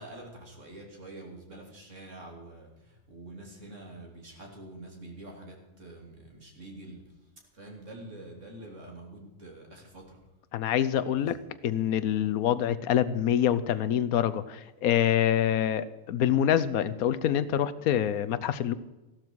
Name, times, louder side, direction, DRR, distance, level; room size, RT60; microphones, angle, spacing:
voice 1, 0.0-10.2 11.1-11.3, right 2 dB, 60° right, 0 dB, 3.4 m, -46 dB
voice 2, 10.5-11.4 11.6-18.7, left 10 dB, 85° left, 14 dB, 1.2 m, -26 dB
15.0 x 12.5 x 4.7 m, 1.1 s
omnidirectional pair, 1.5 m